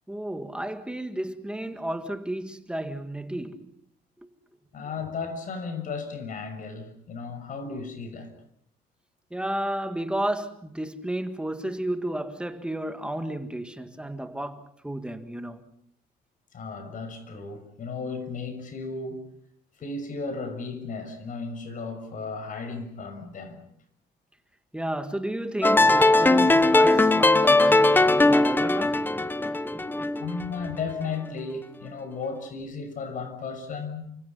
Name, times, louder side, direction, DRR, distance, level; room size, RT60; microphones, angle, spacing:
voice 1, 0.1-3.7 9.3-15.7 24.7-30.3, right 1 dB, 5° right, 1.8 m, -32 dB
voice 2, 4.7-8.3 16.5-19.3 19.8-23.6 30.2-34.1, left 4 dB, 50° left, 6.3 m, -35 dB
sound 1, 25.6-30.7, left 2 dB, 10° left, 1.1 m, -19 dB
29.5 x 25.0 x 5.6 m
cardioid pair, 110°, 17 cm